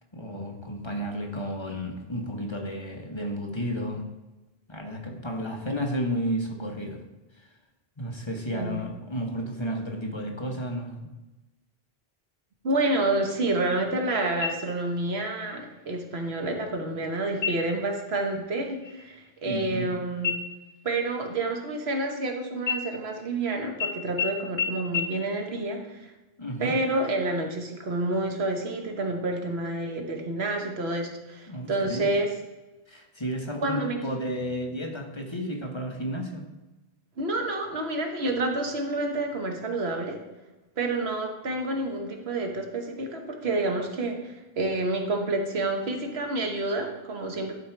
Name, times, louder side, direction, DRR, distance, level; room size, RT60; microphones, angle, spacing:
voice 1, 0.1-4.0 4.7-7.0 7.3-7.5 8.0-11.1 19.4-19.9 26.4-26.8 31.5-32.1 32.9-36.4, equal, 30° left, 1 dB, 1.1 m, -32 dB
voice 2, 12.6-20.4 20.8-26.1 26.6-32.3 33.6-34.0 37.2-40.2 40.8-47.5, right 2 dB, 85° right, 3 dB, 1.4 m, -29 dB
sound 1, 14.4-15.1 15.5-15.6 16.1-16.6 17.3-17.9 18.3-18.5 18.8-19.9 20.2-22.2 22.6-23.4 23.8-23.9 24.2-24.3 24.6-24.7 24.9-25.0, left 6 dB, 55° left, 1.7 m, -32 dB
11.0 x 4.6 x 4.5 m, 1.1 s
omnidirectional pair, 1.0 m